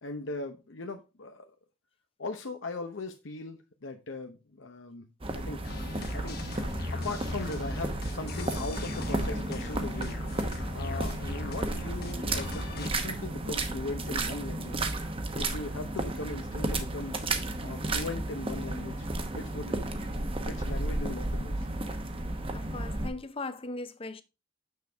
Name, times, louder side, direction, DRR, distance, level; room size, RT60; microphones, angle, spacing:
voice 1, 0.0-1.5 2.2-5.1 5.3-5.6 6.1-6.4 6.9-10.2 10.7-15.0 15.3-17.2 17.6-20.0 20.4-21.7, left 2 dB, 75° left, 0.9 m, -39 dB
sound 1, 5.2-23.1, right 2 dB, 30° right, 0.9 m, -33 dB
sound 2, 5.6-12.9, left 2 dB, 55° left, 1.2 m, -39 dB
voice 2, 22.5-24.2, left 2 dB, 30° left, 0.7 m, -38 dB
6.7 x 6.4 x 3.4 m
head